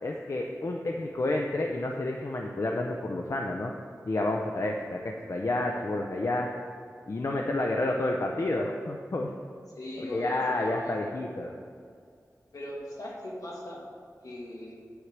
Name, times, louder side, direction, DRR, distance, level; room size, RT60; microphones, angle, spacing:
voice 1, 0.0-3.7 4.0-6.5 7.1-9.3 10.1-11.5, left 2 dB, 60° left, 1 dB, 0.7 m, -30 dB
voice 2, 9.8-11.1 12.5-13.9 14.2-14.8, left 1 dB, 80° left, -3 dB, 1.9 m, -39 dB
9.8 x 4.8 x 7.3 m, 2.2 s
wide cardioid pair, 75°, 6 cm